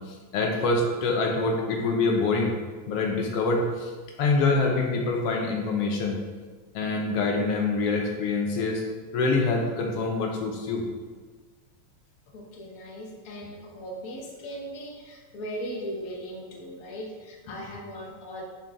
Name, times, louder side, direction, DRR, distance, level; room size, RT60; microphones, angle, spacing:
voice 1, 0.1-2.6 2.9-3.9 4.2-6.2 6.7-8.8 9.1-10.8, left 3 dB, 70° left, 1 dB, 1.6 m, -25 dB
voice 2, 12.3-18.4, equal, 85° left, -1 dB, 0.7 m, -38 dB
9.0 x 4.4 x 3.5 m, 1.4 s
omnidirectional pair, 3.3 m